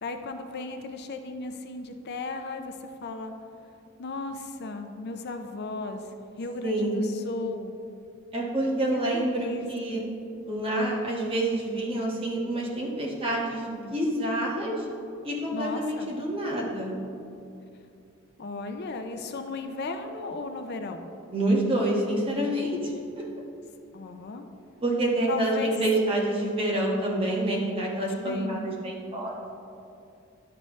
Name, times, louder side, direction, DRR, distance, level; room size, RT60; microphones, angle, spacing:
voice 1, 0.0-3.3 4.0-7.8 8.9-10.1 15.5-16.1 18.4-21.0 23.9-24.5 25.3-25.7 28.2-28.7, left 3 dB, 55° left, 6 dB, 0.5 m, -36 dB
voice 2, 6.6-6.9 8.3-10.0 10.4-14.9 15.2-17.0 21.3-23.2 24.8-29.3, right 1 dB, 25° right, -3 dB, 1.4 m, -27 dB
10.5 x 6.8 x 3.2 m, 2.6 s
head